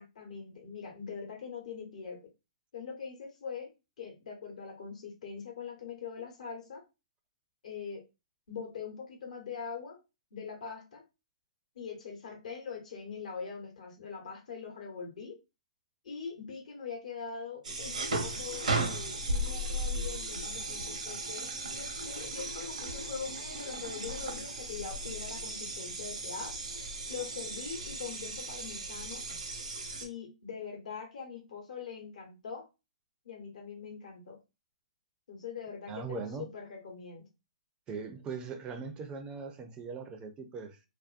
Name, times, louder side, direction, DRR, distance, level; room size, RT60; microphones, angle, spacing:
voice 1, 0.0-2.2 2.7-3.7 4.0-6.8 7.6-8.0 8.5-10.0 10.3-11.0 11.7-15.4 16.0-26.5 27.1-29.2 30.0-32.6 33.2-34.4 35.3-37.2, left 6 dB, 70° left, 1.0 m, -42 dB
sound 1, 17.6-30.1, right 2 dB, 80° right, 0.7 m, -36 dB
voice 2, 35.9-36.5 37.9-40.8, right 5 dB, 25° right, 0.4 m, -40 dB
2.5 x 2.2 x 2.4 m
hypercardioid pair, 125°, 4 cm